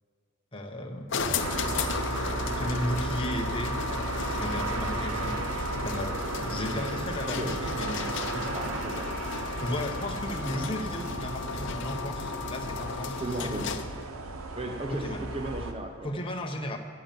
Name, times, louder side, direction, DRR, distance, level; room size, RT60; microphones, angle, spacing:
voice 1, 0.5-1.3 2.4-3.8 4.3-8.7 9.2-13.8 14.9-15.3 16.0-16.8, left 1 dB, 25° left, 2 dB, 1.0 m, -35 dB
sound 1, 1.1-14.0, left 5 dB, 60° left, 0.7 m, -35 dB
sound 2, 1.4-15.7, right 2 dB, 85° right, 0.9 m, -34 dB
voice 2, 8.5-9.1 13.2-13.7 14.6-16.2, right 1 dB, 25° right, 4 dB, 0.7 m, -35 dB
10.5 x 8.7 x 7.5 m, 2.1 s
head